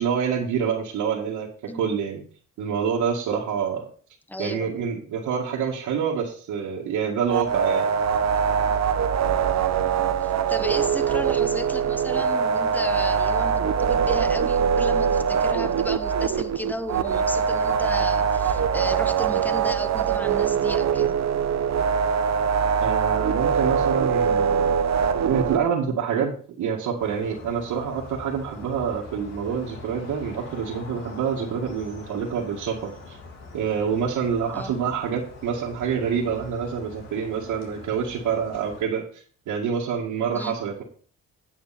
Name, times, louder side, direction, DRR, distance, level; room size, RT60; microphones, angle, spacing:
voice 1, 0.0-1.5 1.7-2.2 2.6-3.9 4.4-7.9 22.8-24.7 25.2-33.2 33.5-40.8, right 7 dB, 85° right, -5 dB, 2.2 m, -27 dB
voice 2, 4.3-4.7 8.5-8.8 10.0-21.2 34.5-34.7 40.3-40.6, left 1 dB, 5° left, 11 dB, 1.1 m, -34 dB
sound 1, 7.3-25.6, right 7 dB, 60° right, 1.1 m, -23 dB
sound 2, 27.0-38.8, left 3 dB, 60° left, 3.1 m, -43 dB
9.7 x 8.5 x 4.4 m, 0.44 s
cardioid pair, 90°, 30 cm